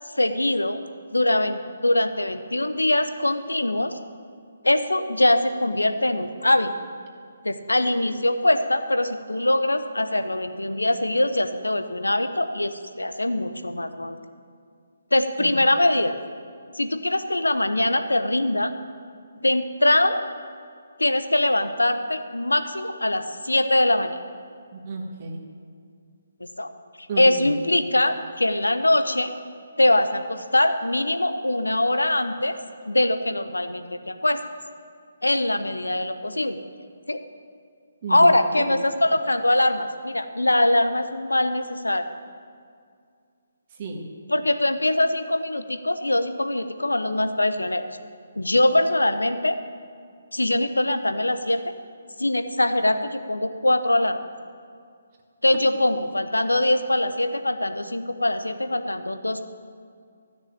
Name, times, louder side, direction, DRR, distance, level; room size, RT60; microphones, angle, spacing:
voice 1, 0.2-0.8 1.1-3.9 4.6-6.7 7.4-14.2 15.1-16.1 16.7-18.7 19.4-20.2 21.0-24.2 26.6-26.7 27.2-29.3 29.8-32.6 32.8-34.4 35.2-36.6 37.1-37.2 38.1-42.0 44.3-47.9 48.4-49.6 50.3-51.7 52.2-54.2 55.4-59.5, left 1 dB, 85° left, 9 dB, 0.9 m, -22 dB
voice 2, 24.7-25.4 27.1-27.5 38.0-38.7 43.7-44.1, right 2 dB, 35° right, 0 dB, 1.6 m, -33 dB
13.5 x 6.6 x 8.8 m, 2.2 s
figure-of-eight pair, 140°, 0 cm